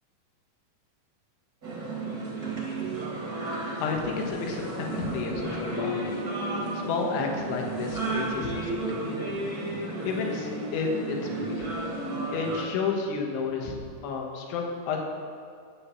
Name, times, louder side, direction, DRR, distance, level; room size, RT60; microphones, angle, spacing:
sound 1, 1.6-12.7, right 2 dB, 25° right, 2.3 m, -33 dB
voice 1, 3.8-6.2 6.7-9.4 10.1-11.7 12.3-13.8 14.0-15.0, left 5 dB, 85° left, 1 dB, 3.7 m, -31 dB
10.0 x 9.5 x 7.5 m, 2.1 s
omnidirectional pair, 5.3 m